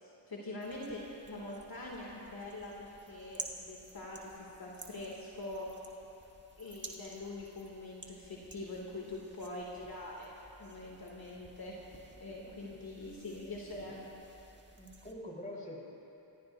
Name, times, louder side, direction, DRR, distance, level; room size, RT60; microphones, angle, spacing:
voice 1, 0.0-5.7 6.6-10.3 10.6-11.8 12.2-14.1, left 2 dB, 50° left, -3 dB, 2.5 m, -44 dB
sound 1, 0.6-15.1, right 2 dB, 25° right, 1.8 m, -52 dB
voice 2, 12.4-12.8 14.8-15.8, left 1 dB, 15° left, -3 dB, 3.9 m, -46 dB
28.5 x 15.0 x 2.7 m, 2.9 s
cardioid pair, 65°, 47 cm